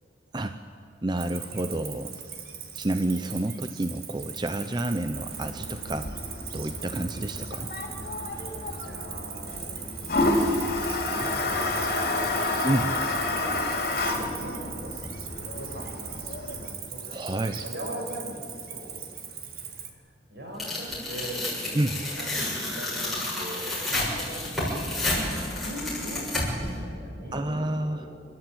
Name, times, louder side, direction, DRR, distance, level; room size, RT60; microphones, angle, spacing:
voice 1, 1.0-2.1 2.7-6.1 6.5-7.7 12.6-12.9 17.1-17.6 21.7-22.0 27.3-28.1, right 1 dB, 25° right, 8 dB, 0.6 m, -29 dB
Cricket, 1.2-19.9, right 8 dB, 55° right, 1.9 m, -40 dB
Toilet flush, 5.1-16.7, left 2 dB, 55° left, 3.5 m, -30 dB
voice 2, 8.4-10.0 10.8-15.0 15.5-17.0 17.3-19.0 19.7-28.2, equal, 75° right, 0 dB, 6.1 m, -41 dB
Tearing, 20.6-26.7, left 1 dB, ahead, 7.3 m, -30 dB
29.5 x 12.5 x 8.7 m, 2.2 s
head